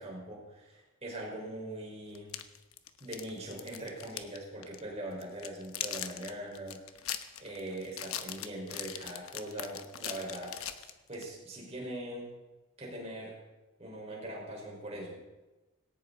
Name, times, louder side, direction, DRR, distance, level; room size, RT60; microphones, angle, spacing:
voice 1, 0.0-2.3 3.0-7.1 7.4-12.3 12.8-13.4 13.8-15.3, right 1 dB, 30° right, -2 dB, 5.3 m, -42 dB
sound 1, 2.1-4.4 4.6-4.8 5.2-11.3, left 10 dB, 75° left, 1.0 m, -40 dB
19.0 x 17.5 x 4.2 m, 1.1 s
head